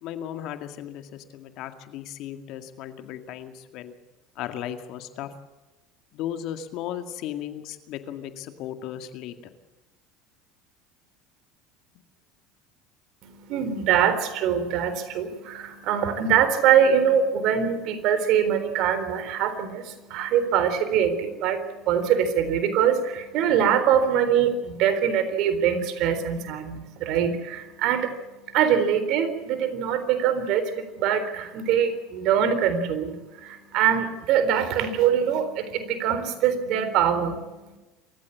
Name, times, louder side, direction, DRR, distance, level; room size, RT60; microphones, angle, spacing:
voice 1, 0.0-3.9 4.4-5.3 6.1-9.3, left 11 dB, 60° left, 8 dB, 2.1 m, -36 dB
voice 2, 13.2-37.8, right 8 dB, 60° right, 11 dB, 3.7 m, -23 dB
27.0 x 15.0 x 8.4 m, 1.1 s
hypercardioid pair, 80°, 0 cm